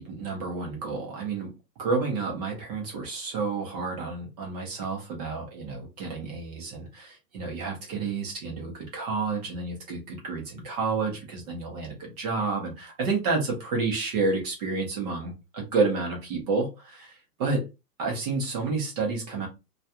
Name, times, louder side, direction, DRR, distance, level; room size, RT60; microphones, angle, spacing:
voice 1, 0.0-1.5 1.8-17.7 18.0-19.5, right 4 dB, 25° right, 0.6 m, -30 dB
2.3 x 2.3 x 2.7 m
hypercardioid pair, 135°, 50 cm